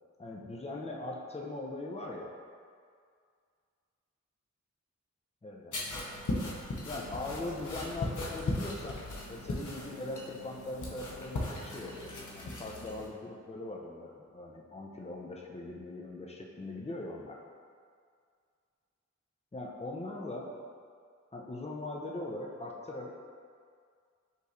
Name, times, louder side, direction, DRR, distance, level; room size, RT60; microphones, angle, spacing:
voice 1, 0.2-2.3 5.4-5.8 6.8-17.4 19.5-20.5 21.3-23.1, left 2 dB, 20° left, -2 dB, 0.6 m, -40 dB
sound 1, 5.7-13.1, left 2 dB, 85° left, 0.7 m, -38 dB
5.3 x 3.1 x 2.6 m, 2.1 s
wide cardioid pair, 50°, 30 cm